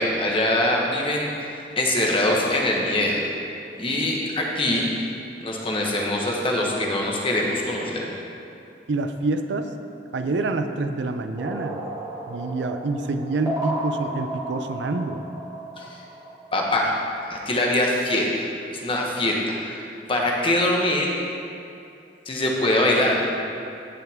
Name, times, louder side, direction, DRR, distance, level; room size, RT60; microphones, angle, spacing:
voice 1, 0.0-1.3 1.8-3.2 3.8-4.9 5.4-8.1 15.8-15.9 16.5-16.9 17.3-19.8 20.1-21.1 22.3-23.3, left 1 dB, 30° left, -2 dB, 1.3 m, -23 dB
voice 2, 8.9-9.7 10.1-11.8 12.3-15.2, right 3 dB, 85° right, 8 dB, 0.5 m, -27 dB
sound 1, 11.4-16.7, right 1 dB, 20° right, 2.1 m, -33 dB
16.5 x 5.7 x 3.6 m, 2.6 s
head